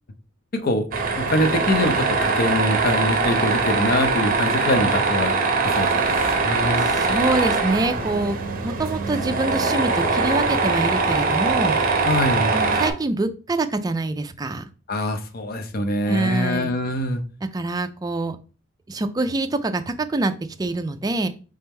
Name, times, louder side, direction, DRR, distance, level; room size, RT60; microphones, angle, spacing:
voice 1, 0.5-0.8 1.2-5.4 5.6-6.9 12.1-12.5 14.9-17.2, left 1 dB, 50° left, 0.6 m, -24 dB
Tools, 0.9-12.9, right 4 dB, 45° right, 0.7 m, -22 dB
voice 2, 6.8-8.4 8.6-11.8 12.5-14.7 16.1-16.7 17.5-18.4 18.9-21.3, right 2 dB, 20° right, 0.3 m, -25 dB
3.5 x 3.4 x 4.3 m
head